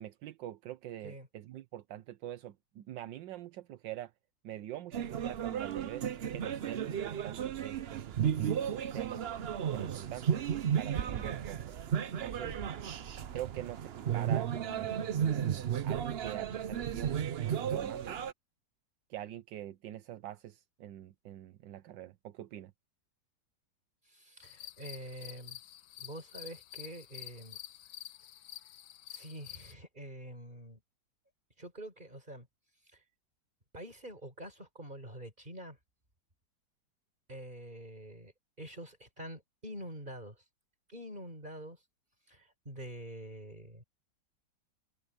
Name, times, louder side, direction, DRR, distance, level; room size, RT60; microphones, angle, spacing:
voice 1, 0.0-4.1 4.4-6.1 6.3-9.3 9.7-10.5 10.8-11.7 12.2-12.5 13.3-18.2 19.1-22.7, right 13 dB, 80° right, 1.4 m, -44 dB
sound 1, 4.9-18.3, right 8 dB, 65° right, 0.6 m, -34 dB
voice 2, 24.1-25.6 26.0-27.6 29.1-30.8 31.6-32.5 32.9-33.0 33.7-35.8 37.3-38.3 38.6-40.4 40.9-41.8 42.3-43.8, right 1 dB, 25° right, 5.8 m, -46 dB
sound 2, 24.4-29.7, left 12 dB, 75° left, 1.4 m, -49 dB
omnidirectional pair, 2.0 m